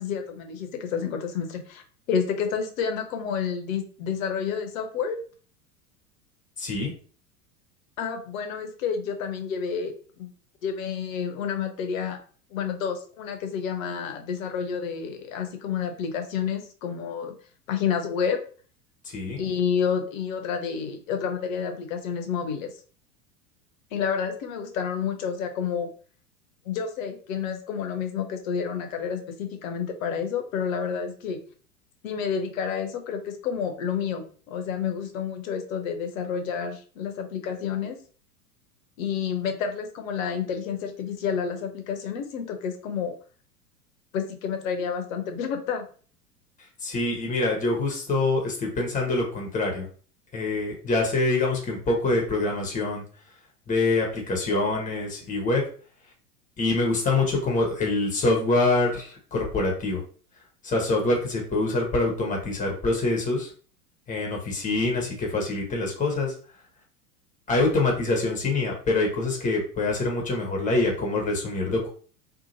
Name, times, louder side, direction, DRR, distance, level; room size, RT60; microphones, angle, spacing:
voice 1, 0.0-1.8 2.1-5.2 8.0-10.3 10.6-12.2 12.5-17.4 17.7-18.4 19.4-22.7 23.9-25.9 26.7-31.4 32.0-38.0 39.0-43.1 44.1-45.9, left 7 dB, 55° left, 6 dB, 0.8 m, -29 dB
voice 2, 6.6-6.9 19.0-19.4 46.8-49.9 50.3-53.0 53.7-55.6 56.6-60.0 60.6-63.5 64.1-66.3 67.5-71.9, left 2 dB, 15° left, 0 dB, 1.0 m, -25 dB
2.8 x 2.4 x 2.6 m, 0.42 s
figure-of-eight pair, 90°, 47 cm